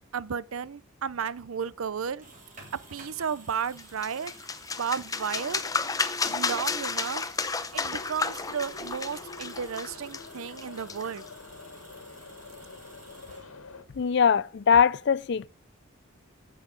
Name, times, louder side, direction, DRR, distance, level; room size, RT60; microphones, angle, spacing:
voice 1, 0.0-2.2 2.9-4.3 4.8-5.7 6.3-11.2, right 6 dB, 80° right, 0.6 m, -33 dB
sound 1, 2.0-13.9, right 3 dB, 40° right, 3.5 m, -53 dB
sound 2, 3.8-11.3, left 4 dB, 15° left, 0.7 m, -32 dB
Subway metro underground, 7.8-13.8, left 3 dB, 80° left, 1.6 m, -46 dB
voice 2, 14.0-15.5, left 6 dB, 55° left, 0.4 m, -22 dB
15.5 x 6.4 x 5.2 m
head